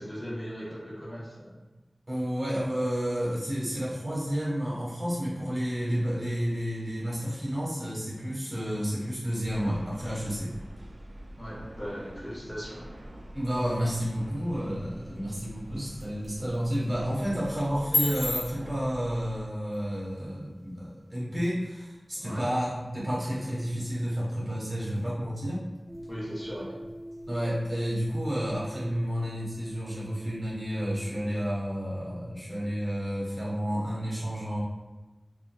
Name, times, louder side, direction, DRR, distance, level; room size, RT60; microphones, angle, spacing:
voice 1, 0.0-1.6 11.4-12.9 22.2-22.5 26.1-26.7, equal, 25° left, -8 dB, 1.1 m, -38 dB
voice 2, 2.1-10.5 13.3-25.6 27.3-34.6, equal, 35° right, -7 dB, 1.4 m, -31 dB
sound 1, 9.4-19.5, equal, 55° right, 0.4 m, -45 dB
sound 2, 14.5-28.5, left 1 dB, 80° left, 0.9 m, -40 dB
sound 3, 25.9-31.2, equal, 10° right, 0.5 m, -44 dB
3.8 x 2.4 x 2.3 m, 1.1 s
wide cardioid pair, 60°, 0 cm